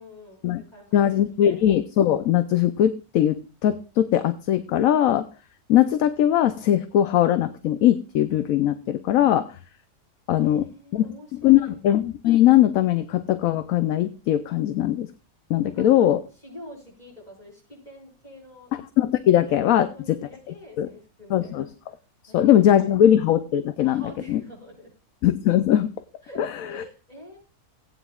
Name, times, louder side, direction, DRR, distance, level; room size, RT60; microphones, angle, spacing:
voice 1, 0.0-1.6 10.4-11.7 15.6-16.1 16.4-18.7 19.7-21.7 22.3-23.1 23.8-24.9 26.2-27.4, equal, 30° left, -2 dB, 6.6 m, -46 dB
voice 2, 0.9-5.3 5.7-9.5 10.3-11.1 11.4-15.1 15.5-16.2 19.0-20.2 20.8-20.9 21.3-21.7 22.3-24.0 24.3-24.4 25.2-25.9 26.4-26.5, left 11 dB, 70° left, 11 dB, 1.0 m, -20 dB
18.0 x 9.2 x 2.4 m, 0.33 s
omnidirectional pair, 1.6 m